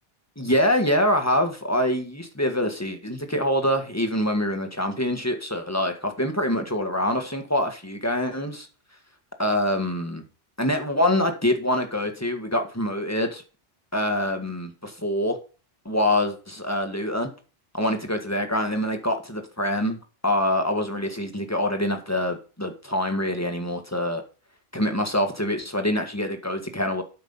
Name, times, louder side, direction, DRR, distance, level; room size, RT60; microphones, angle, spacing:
voice 1, 0.4-8.7 9.4-10.2 10.6-13.4 13.9-15.4 15.8-17.3 17.7-24.2 24.7-27.0, left 1 dB, 15° left, 5 dB, 1.7 m, -25 dB
12.5 x 5.8 x 5.6 m, 0.35 s
omnidirectional pair, 1.2 m